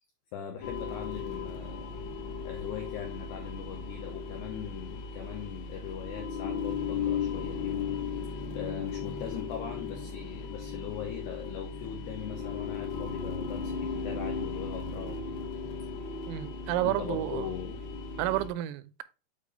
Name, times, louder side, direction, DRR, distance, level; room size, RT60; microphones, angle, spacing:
voice 1, 0.3-1.9 2.4-7.9 8.5-15.2 16.8-17.8, left 8 dB, 85° left, 2.3 m, -40 dB
sound 1, 0.6-18.5, left 5 dB, 70° left, 2.5 m, -36 dB
voice 2, 16.3-17.5 18.2-19.0, right 15 dB, 85° right, 3.2 m, -31 dB
8.8 x 3.3 x 3.8 m
omnidirectional pair, 5.8 m